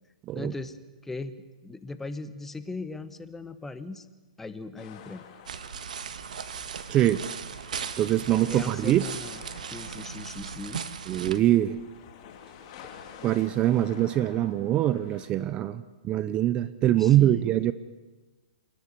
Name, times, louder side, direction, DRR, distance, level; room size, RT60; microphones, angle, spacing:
voice 1, 0.3-0.8 1.0-1.4 1.6-4.1 4.4-5.2 8.4-9.4 9.7-10.8 17.0-17.5, left 3 dB, 5° left, 11 dB, 1.1 m, -38 dB
sound 1, 4.8-15.3, left 8 dB, 40° left, 3.3 m, -50 dB
sound 2, 5.5-11.4, right 7 dB, 75° right, 1.6 m, -37 dB
voice 2, 6.9-7.2 8.0-9.1 11.1-11.8 13.2-17.7, right 13 dB, 25° right, 15 dB, 0.7 m, -23 dB
28.0 x 11.0 x 9.8 m, 1.2 s
hypercardioid pair, 140°, 4 cm